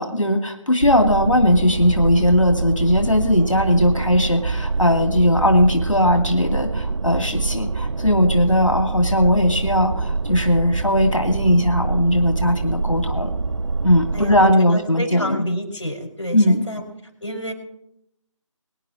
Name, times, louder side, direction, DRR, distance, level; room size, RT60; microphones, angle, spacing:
voice 1, 0.0-13.3 13.8-15.4 16.3-16.6, left 1 dB, 80° left, 4 dB, 2.2 m, -18 dB
sound 1, 0.8-14.5, right 3 dB, 65° right, 0.6 m, -25 dB
voice 2, 14.1-16.8 17.2-17.5, equal, 65° left, 2 dB, 4.9 m, -28 dB
23.5 x 10.0 x 3.0 m, 0.79 s
figure-of-eight pair, 165°, 16 cm